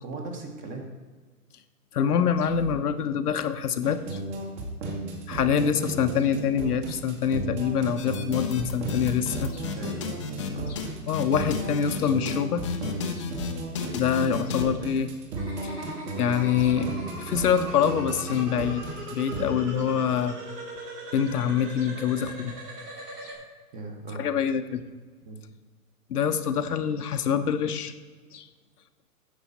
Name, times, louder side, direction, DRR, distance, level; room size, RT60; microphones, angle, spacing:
voice 1, 0.0-0.9 9.7-10.2 10.5-10.7 23.7-24.3 25.3-25.4, right 2 dB, 15° right, 3 dB, 0.9 m, -39 dB
voice 2, 1.9-4.2 5.3-9.6 11.0-12.7 13.2-13.3 13.9-15.1 15.6-15.9 16.2-16.9 17.2-18.9 19.1-20.4 21.1-22.6 23.2-23.3 24.2-24.8 26.1-27.9 28.3-28.5, left 8 dB, 75° left, 9 dB, 0.8 m, -25 dB
sound 1, 3.8-19.4, right 2 dB, 45° right, 2.1 m, -34 dB
sound 2, 8.0-10.5 10.7-10.9 11.1-12.0 12.2-12.4 12.6-14.6, left 6 dB, 20° left, 0.4 m, -33 dB
sound 3, 15.4-23.3, right 1 dB, 85° right, 3.0 m, -40 dB
9.7 x 7.1 x 4.1 m, 1.4 s
hypercardioid pair, 135°, 46 cm